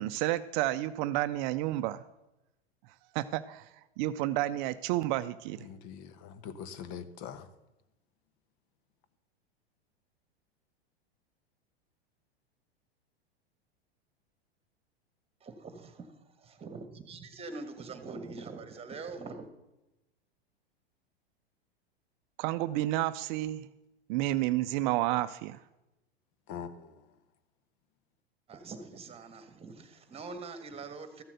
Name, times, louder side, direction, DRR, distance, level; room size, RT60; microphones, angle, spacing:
voice 1, 0.0-2.0 3.1-3.7 4.0-5.7 22.4-23.7 24.1-25.6, right 15 dB, 50° right, 0.5 m, -30 dB
voice 2, 5.6-7.5 26.5-26.9, left 7 dB, 50° left, 1.0 m, -42 dB
voice 3, 15.4-19.5 28.5-31.2, right 4 dB, 20° right, 1.5 m, -44 dB
13.5 x 7.4 x 6.6 m
hypercardioid pair, 105°, 31 cm